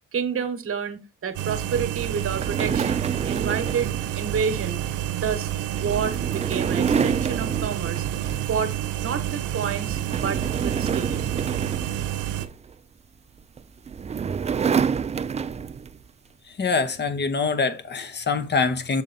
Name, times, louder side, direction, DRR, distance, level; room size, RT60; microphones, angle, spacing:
voice 1, 0.1-4.8 5.1-8.0 8.4-8.7 9.0-11.2, right 6 dB, 45° right, 1.2 m, -29 dB
sound 1, 1.3-12.5, right 12 dB, 85° right, 0.7 m, -29 dB
sound 2, 2.1-8.7 9.0-9.3 9.7-12.7 13.6-16.0, right 6 dB, 25° right, 0.3 m, -28 dB
voice 2, 16.5-19.0, left 4 dB, 35° left, 1.0 m, -24 dB
7.1 x 4.0 x 4.0 m
cardioid pair, 90°, 30 cm